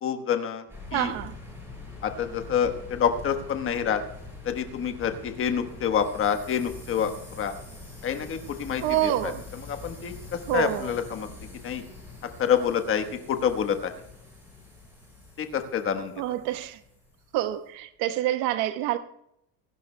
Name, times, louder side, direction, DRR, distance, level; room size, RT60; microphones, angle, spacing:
voice 1, 0.0-0.6 0.9-1.1 2.0-4.0 4.4-7.6 8.0-11.3 11.6-11.8 12.4-13.9 15.4-16.1, left 8 dB, 25° left, 1.2 m, -27 dB
sound 1, 0.7-17.5, left 2 dB, 5° right, 6.3 m, -44 dB
voice 2, 0.9-1.3 8.8-9.4 10.5-10.9 16.2-16.8 17.3-19.0, right 13 dB, 60° right, 1.1 m, -27 dB
26.0 x 12.0 x 2.2 m
cardioid pair, 175°, 47 cm